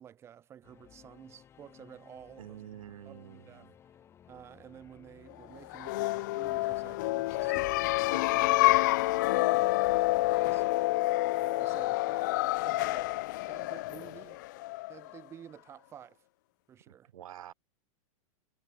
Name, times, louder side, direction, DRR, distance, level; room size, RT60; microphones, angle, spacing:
voice 1, 0.0-2.6 3.1-3.7 4.3-10.9 11.4-12.4 12.6-13.2 13.5-14.4 14.9-16.2 16.7-17.1, right 9 dB, 15° right, 5.2 m, -52 dB
Singing / Musical instrument, 0.6-7.7, left 9 dB, 15° left, 6.8 m, -57 dB
voice 2, 2.4-3.7 16.9-17.5, right 11 dB, 70° right, 6.5 m, -48 dB
sound 1, 5.7-15.2, left 20 dB, 35° left, 0.6 m, -28 dB
supercardioid pair, 180°, 18 cm